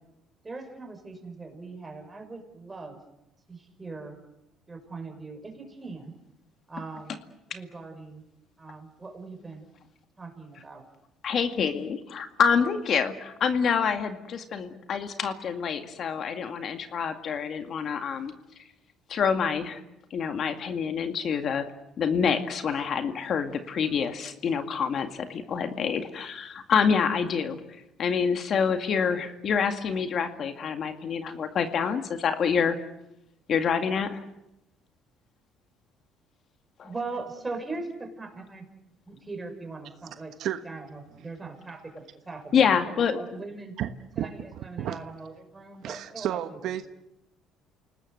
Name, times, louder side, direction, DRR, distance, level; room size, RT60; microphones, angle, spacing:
voice 1, 0.4-3.0 3.5-4.2 4.7-6.1 6.7-7.2 7.5-8.2 8.6-9.7 10.2-10.8 36.8-38.7 39.1-42.8 43.1-43.8 44.2-46.7, right 3 dB, 20° right, 5 dB, 5.9 m, -40 dB
voice 2, 11.2-18.3 19.1-19.8 20.1-21.7 22.0-27.6 28.0-32.8 33.5-34.2 36.8-36.9 42.5-43.2, left 6 dB, 50° left, 7 dB, 2.1 m, -27 dB
voice 3, 43.8-44.3 44.8-45.0 45.8-46.9, right 11 dB, 65° right, 9 dB, 1.2 m, -31 dB
28.5 x 19.0 x 8.0 m, 0.89 s
cardioid pair, 105°, 0 cm